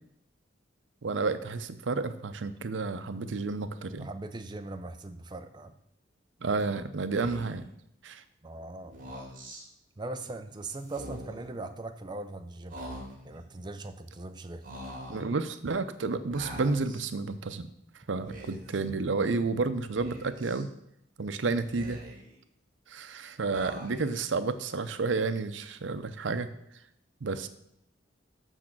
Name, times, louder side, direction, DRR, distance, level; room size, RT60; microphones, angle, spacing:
voice 1, 1.0-4.1 6.4-7.7 8.0-8.2 15.1-17.7 18.1-20.7 21.2-22.0 22.9-26.5 27.2-27.5, right 3 dB, 85° right, 11 dB, 0.6 m, -31 dB
voice 2, 4.0-5.7 8.4-8.9 10.0-12.8 13.2-14.6, right 2 dB, 25° right, 7 dB, 0.5 m, -40 dB
Speech, 7.1-7.7 8.8-9.6 10.8-11.5 12.7-13.4 14.6-15.3 16.3-17.1 18.1-18.8 20.0-20.6 21.6-22.4 23.5-24.2, equal, 45° right, 2.3 m, -43 dB
6.6 x 6.4 x 6.1 m, 0.76 s
head